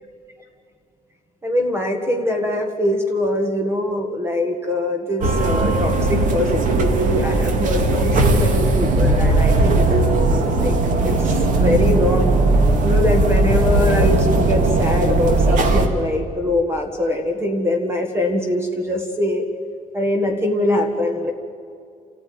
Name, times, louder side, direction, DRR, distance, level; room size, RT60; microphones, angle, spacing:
voice 1, 1.4-10.8 11.0-11.3 11.5-12.4 12.8-19.4 19.9-21.3, left 1 dB, 15° right, 4 dB, 1.7 m, -22 dB
sound 1, 5.2-15.9, right 2 dB, 65° right, 2.2 m, -18 dB
28.0 x 14.5 x 9.5 m, 2.5 s
cardioid pair, 170°, 15 cm